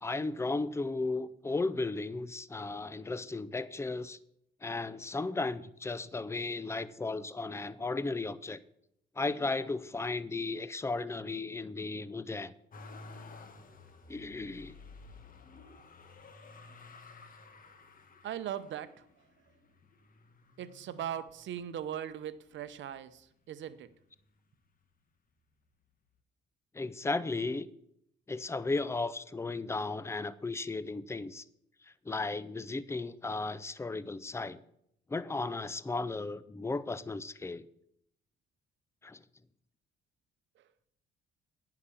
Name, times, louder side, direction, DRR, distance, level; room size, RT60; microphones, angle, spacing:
voice 1, 0.0-4.2 4.6-8.6 9.2-12.5 14.1-14.8 26.7-27.7 28.3-31.4 31.8-34.6 35.1-37.7 39.0-39.2, left 3 dB, 15° left, 17 dB, 0.5 m, -35 dB
Motor vehicle (road), 12.7-21.8 22.4-23.3 23.5-24.6 25.7-25.8, left 3 dB, 45° left, 1.2 m, -53 dB
voice 2, 18.2-19.0 20.6-23.9, right 10 dB, 70° right, 13 dB, 0.8 m, -39 dB
9.6 x 5.9 x 7.0 m, 0.74 s
cardioid pair, 90°, 20 cm